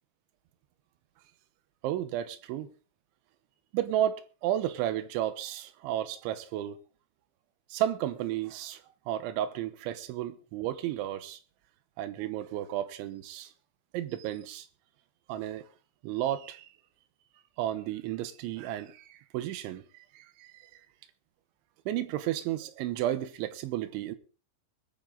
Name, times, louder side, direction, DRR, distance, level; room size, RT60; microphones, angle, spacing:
voice 1, 1.8-2.7 3.7-4.2 4.4-6.8 7.7-8.8 9.1-11.4 12.0-13.5 13.9-14.7 15.3-15.6 16.0-16.7 17.6-20.5 21.9-24.2, right 12 dB, 85° right, 3.4 m, -32 dB
21.0 x 9.2 x 3.7 m
omnidirectional pair, 5.3 m